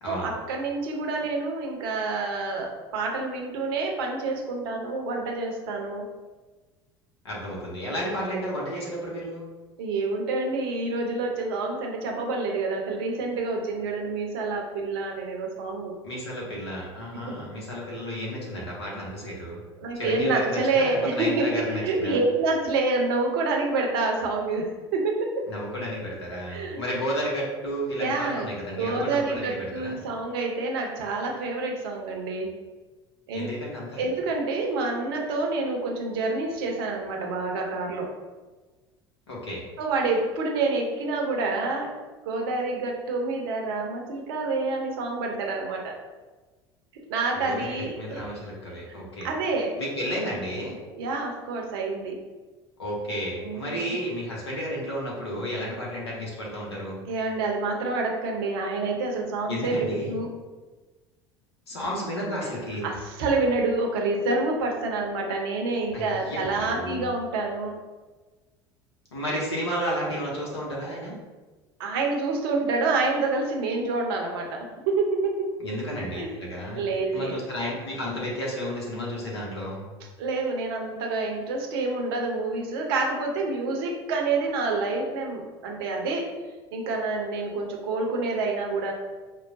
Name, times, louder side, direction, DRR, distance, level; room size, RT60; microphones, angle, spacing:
voice 1, 0.0-6.1 9.8-15.9 17.3-17.4 19.8-25.5 26.5-26.8 28.0-28.5 28.8-32.5 33.3-33.5 34.0-38.1 39.8-41.9 42.2-45.9 47.1-48.2 49.2-49.7 51.0-52.1 53.4-54.0 57.1-60.3 62.8-67.7 71.8-75.5 76.2-76.3 76.7-77.4 80.2-86.3 86.7-88.9, right 3 dB, 60° right, 0 dB, 0.6 m, -27 dB
voice 2, 7.2-9.5 16.0-19.6 19.9-22.2 25.5-30.0 33.3-34.1 39.3-39.6 47.3-49.3 49.8-50.7 52.8-57.0 59.5-60.1 61.7-62.9 65.9-67.1 69.1-71.2 75.6-76.8 77.1-79.8, equal, 75° left, -4 dB, 0.8 m, -32 dB
4.6 x 2.1 x 2.5 m, 1.3 s
figure-of-eight pair, 65°, 14 cm